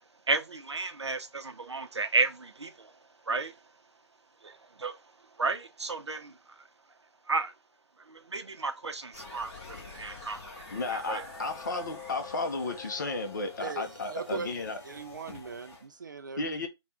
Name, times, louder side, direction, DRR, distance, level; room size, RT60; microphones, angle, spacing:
voice 1, 0.3-2.9 3.3-3.5 4.4-5.0 5.4-6.4 7.3-7.5 8.1-10.4 10.9-11.2, right 3 dB, 75° right, 0.7 m, -32 dB
sound 1, 9.1-15.9, left 4 dB, 25° left, 1.1 m, -46 dB
voice 2, 10.7-14.8 16.4-16.7, left 3 dB, 45° left, 0.8 m, -33 dB
voice 3, 13.6-16.7, right 5 dB, 45° right, 0.4 m, -40 dB
3.5 x 2.4 x 4.2 m
figure-of-eight pair, 155°, 15 cm